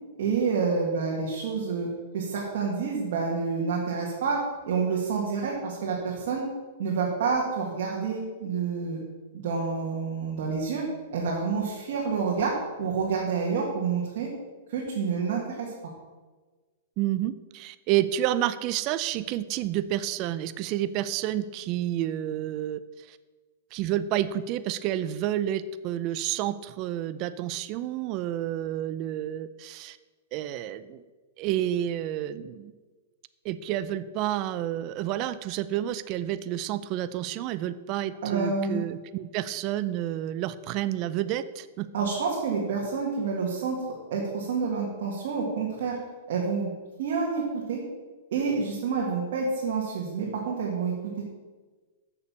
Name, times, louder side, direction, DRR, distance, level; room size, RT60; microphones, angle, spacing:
voice 1, 0.2-1.9 2.1-4.4 4.7-6.5 6.8-9.0 9.3-10.8 11.1-14.3 14.7-15.7 38.2-38.8 41.9-43.8 44.1-46.0 46.3-46.7 47.0-47.8 48.3-51.3, right 5 dB, 60° right, -3 dB, 1.9 m, -28 dB
voice 2, 17.0-23.2 23.7-30.0 30.3-31.0 31.4-32.7 33.4-41.9, right 12 dB, 35° right, 14 dB, 0.4 m, -30 dB
6.8 x 6.7 x 7.0 m, 1.3 s
hypercardioid pair, 150°, 0 cm